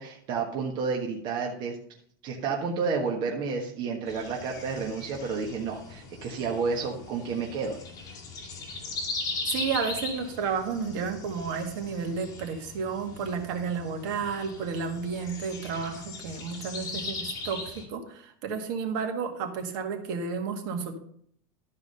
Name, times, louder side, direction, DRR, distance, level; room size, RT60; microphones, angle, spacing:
voice 1, 0.0-1.8 2.2-7.8, right 5 dB, 45° right, 0 dB, 1.4 m, -30 dB
sound 1, 4.1-17.8, left 3 dB, 30° left, 2.5 m, -39 dB
voice 2, 9.5-21.0, right 5 dB, 60° right, 4 dB, 1.9 m, -32 dB
12.5 x 4.8 x 5.4 m, 0.64 s
supercardioid pair, 145°, 11 cm